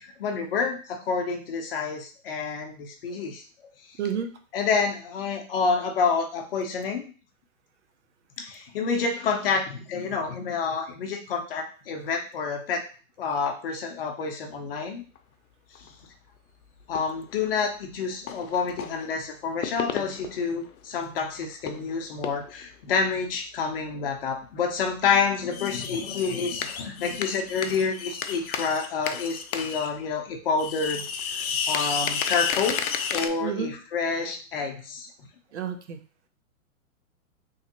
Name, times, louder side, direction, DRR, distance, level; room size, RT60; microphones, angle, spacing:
voice 1, 0.0-3.4 4.5-7.0 8.4-12.8 13.2-15.0 16.9-32.8 33.1-35.1, left 5 dB, 40° left, 4 dB, 0.7 m, -28 dB
voice 2, 4.0-4.3 33.4-33.7 35.5-36.0, right 7 dB, 55° right, 7 dB, 0.6 m, -30 dB
sound 1, 15.1-15.2 15.7-15.9 16.9-17.6 18.3-19.1 19.4-20.7 21.0-21.1 21.3-21.9 22.2-22.6 24.3-24.4 25.4-29.9 30.2-30.3 30.5-33.3, left 7 dB, 85° left, 0.7 m, -32 dB
3.4 x 3.1 x 2.9 m, 0.38 s
hypercardioid pair, 155°, 42 cm